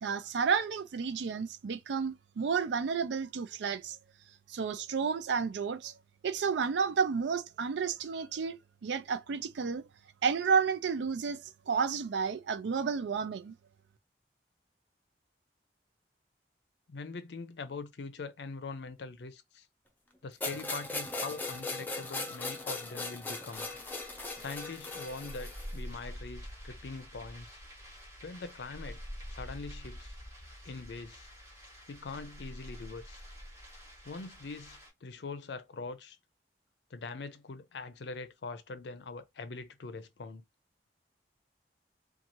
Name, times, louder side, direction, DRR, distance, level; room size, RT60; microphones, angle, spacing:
voice 1, 0.0-4.0 4.5-5.9 6.2-8.6 8.8-9.8 10.2-13.5, right 6 dB, 90° right, 0.4 m, -31 dB
voice 2, 16.9-19.7 20.2-23.7 24.4-27.6 28.2-29.0 29.3-30.1 30.6-31.3 31.9-33.2 34.0-36.2 36.9-40.4, left 4 dB, 80° left, 0.5 m, -43 dB
sound 1, 20.4-25.8, left 3 dB, 10° left, 0.5 m, -38 dB
sound 2, 23.5-34.9, equal, 15° right, 1.3 m, -47 dB
3.0 x 2.3 x 2.6 m
head